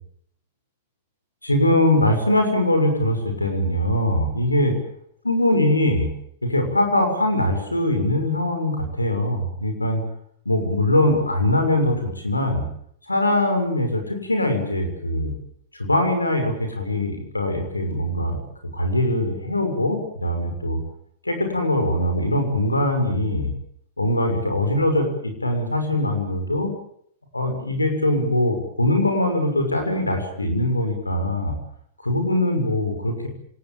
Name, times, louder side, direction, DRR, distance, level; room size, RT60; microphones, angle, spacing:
voice 1, 1.4-4.7 5.2-6.1 6.4-10.0 10.4-12.6 13.1-15.3 15.7-18.4 18.7-20.8 21.2-23.5 24.0-26.7 27.3-31.5 32.0-33.3, left 1 dB, 90° left, 6 dB, 6.5 m, -22 dB
26.5 x 18.5 x 8.7 m, 0.68 s
figure-of-eight pair, 100°, 0 cm